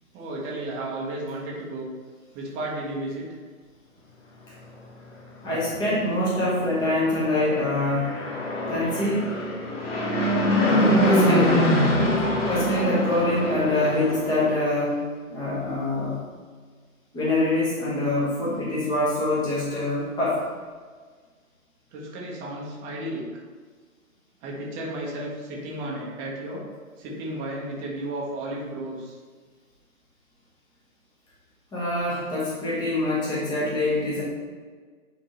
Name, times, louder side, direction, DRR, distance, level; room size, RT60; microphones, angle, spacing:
voice 1, 0.1-1.9 2.3-3.3 21.9-23.4 24.4-26.6 27.0-29.2, right 1 dB, 20° right, -3 dB, 1.0 m, -33 dB
voice 2, 5.4-8.1 8.7-9.3 10.6-11.6 12.5-15.0 15.3-16.2 17.1-20.4 31.7-34.2, left 1 dB, 10° left, -7 dB, 1.2 m, -25 dB
Fixed-wing aircraft airplane, 7.3-14.7, equal, 40° left, 1.8 m, -23 dB
9.8 x 3.6 x 3.0 m, 1.5 s
hypercardioid pair, 140°, 44 cm